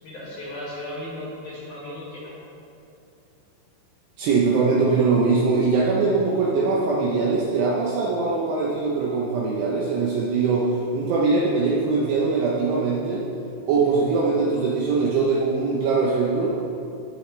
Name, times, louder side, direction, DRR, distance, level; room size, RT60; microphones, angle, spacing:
voice 1, 0.0-2.3, left 1 dB, 50° left, -8 dB, 2.8 m, -35 dB
voice 2, 4.2-13.3 13.7-16.6, right 4 dB, 75° right, -4 dB, 2.5 m, -22 dB
16.0 x 6.4 x 3.2 m, 2.7 s
omnidirectional pair, 5.6 m